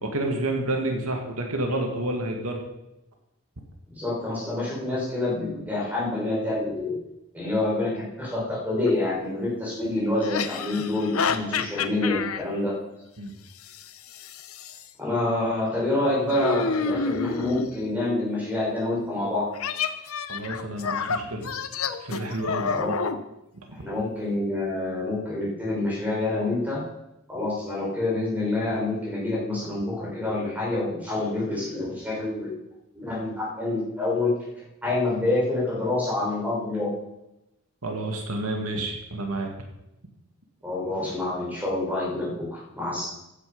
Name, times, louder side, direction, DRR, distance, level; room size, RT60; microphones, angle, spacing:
voice 1, 0.0-2.6 11.3-11.5 13.2-13.3 20.3-21.5 22.0-22.8 37.8-39.5, right 1 dB, 90° right, 3 dB, 2.2 m, -29 dB
voice 2, 3.9-7.0 7.3-12.7 15.0-19.5 22.7-22.9 23.7-26.8 27.3-32.5 32.9-34.3 34.8-36.9 40.6-43.1, left 2 dB, 5° right, -5 dB, 5.7 m, -27 dB
sound 1, 8.9-9.0 10.2-12.4 13.7-14.8 16.3-17.8 19.5-23.2, left 5 dB, 80° left, 0.9 m, -29 dB
15.0 x 9.7 x 5.6 m, 0.90 s
head